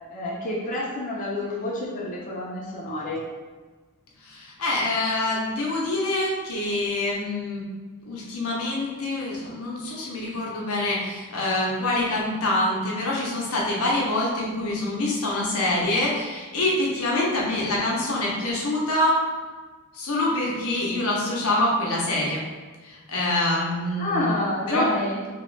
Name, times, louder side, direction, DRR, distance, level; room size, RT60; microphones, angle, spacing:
voice 1, 0.1-3.2 17.1-17.3 21.0-21.1 24.0-25.2, left 1 dB, 35° left, -6 dB, 0.6 m, -28 dB
voice 2, 4.2-7.7 8.1-19.2 19.9-22.4 22.8-24.3 24.7-24.9, left 1 dB, 80° left, -4 dB, 0.7 m, -25 dB
2.9 x 2.4 x 3.1 m, 1.4 s
head